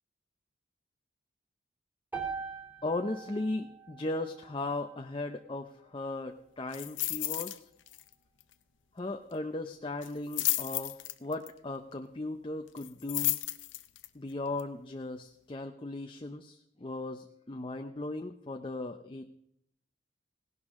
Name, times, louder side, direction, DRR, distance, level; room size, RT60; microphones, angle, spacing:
sound 1, 2.1-6.3, right 5 dB, 10° right, 2.8 m, -44 dB
voice 1, 2.8-7.6 9.0-13.4 14.1-19.3, left 2 dB, 25° left, 5 dB, 0.6 m, -37 dB
sound 2, 6.7-7.6 7.9-8.1 8.4-8.5 10.0-11.5 12.8-14.1 14.6-14.7, left 17 dB, 75° left, 0.7 m, -32 dB
17.5 x 11.5 x 3.7 m, 0.74 s
head